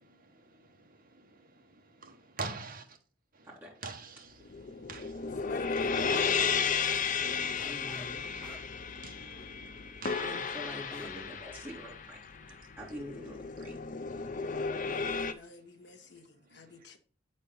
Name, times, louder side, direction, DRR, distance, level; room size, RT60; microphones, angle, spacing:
voice 1, 0.0-3.0 3.3-3.5 3.8-5.4 5.8-5.9 7.0-7.7 8.7-10.3 14.3-14.9 16.5-16.9, right 4 dB, 45° right, 1.3 m, -47 dB
voice 2, 3.4-3.7 7.6-8.2 10.1-12.2 12.5-13.8, equal, 10° right, 3.3 m, -45 dB
sound 1, 4.4-15.3, left 5 dB, 40° left, 0.5 m, -33 dB
voice 3, 5.4-6.7 14.9-17.0, left 2 dB, 60° left, 1.2 m, -47 dB
sound 2, 7.6-8.1 8.4-11.3 11.7-11.8 12.3-12.7, left 1 dB, 5° left, 0.8 m, -53 dB
8.3 x 4.3 x 5.5 m
head